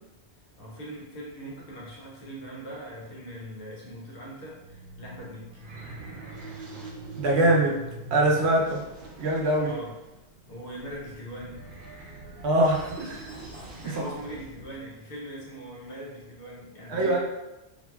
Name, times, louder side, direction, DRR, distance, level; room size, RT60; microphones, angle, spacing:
voice 1, 0.6-5.6 9.6-9.9 10.5-12.3 13.8-17.2, right 1 dB, 65° left, -4 dB, 0.9 m, -41 dB
sound 1, 4.3-14.8, right 1 dB, 60° right, 0.7 m, -44 dB
voice 2, 7.2-7.8 8.1-8.8 9.2-9.8 12.4-13.3 13.8-14.0 16.9-17.2, right 1 dB, 80° right, -2 dB, 0.9 m, -23 dB
2.9 x 2.6 x 2.2 m, 0.97 s
omnidirectional pair, 1.1 m